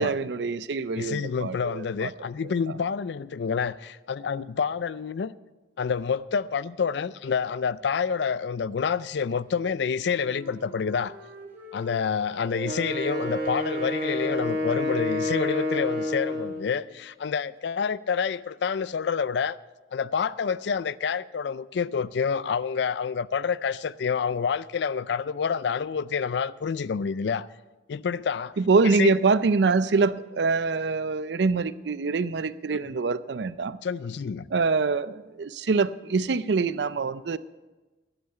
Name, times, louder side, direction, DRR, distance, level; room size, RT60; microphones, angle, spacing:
voice 1, 0.0-2.1 2.4-2.7 28.6-33.8 34.5-37.4, right 4 dB, 75° right, 0.5 m, -25 dB
voice 2, 1.0-5.3 5.8-11.2 11.7-19.6 19.9-27.5 27.9-28.5 28.8-29.1 33.8-34.5, left 6 dB, 75° left, 0.4 m, -28 dB
Wind instrument woodwind instrument, 9.7-12.7 13.2-17.0, right 2 dB, 10° right, 3.0 m, -43 dB
Wind instrument woodwind instrument 2, 12.6-16.7, left 1 dB, 55° right, 2.1 m, -29 dB
11.5 x 8.6 x 8.1 m
head